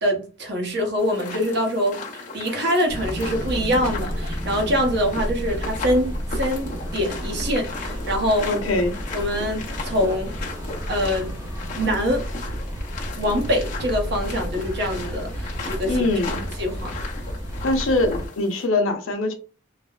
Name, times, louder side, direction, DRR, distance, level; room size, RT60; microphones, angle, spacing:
voice 1, 0.0-8.5 9.1-10.4 10.9-11.3 11.7-12.2 13.1-16.1 16.6-17.0, equal, 55° right, 0.8 m, -24 dB
sound 1, 1.0-18.7, left 3 dB, 40° left, 0.6 m, -37 dB
sound 2, 2.9-18.3, equal, 15° right, 0.5 m, -31 dB
voice 2, 8.4-8.9 15.8-16.4 17.6-19.3, left 2 dB, 85° left, 0.6 m, -22 dB
3.1 x 2.0 x 2.3 m
head